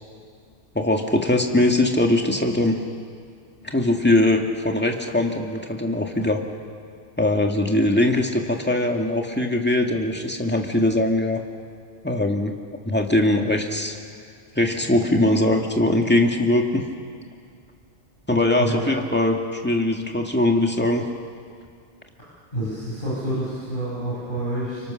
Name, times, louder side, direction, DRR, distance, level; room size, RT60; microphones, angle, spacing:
voice 1, 0.7-2.8 3.6-6.4 7.2-11.4 12.0-12.5 12.9-14.0 14.6-16.9 18.3-21.0, left 1 dB, 10° left, 2 dB, 2.1 m, -21 dB
voice 2, 22.5-24.9, right 1 dB, 45° left, -7 dB, 6.5 m, -28 dB
30.0 x 25.0 x 6.6 m, 2.2 s
omnidirectional pair, 1.2 m